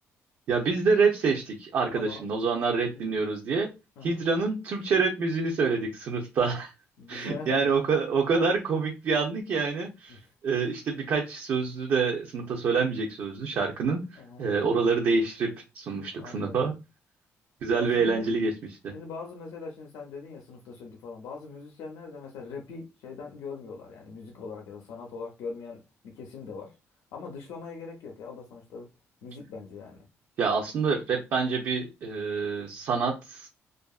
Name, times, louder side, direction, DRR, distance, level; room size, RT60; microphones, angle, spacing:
voice 1, 0.5-3.7 4.0-6.7 7.1-16.7 17.6-18.9 30.4-33.5, right 4 dB, 60° right, 0.6 m, -27 dB
voice 2, 1.9-2.3 2.9-3.2 4.0-4.2 7.0-7.7 10.1-10.2 14.2-14.5 16.2-16.7 17.8-18.2 18.9-26.8 27.1-28.9 29.2-30.1, left 4 dB, 90° left, 0.6 m, -41 dB
2.7 x 2.4 x 2.3 m
cardioid pair, 130°, 5 cm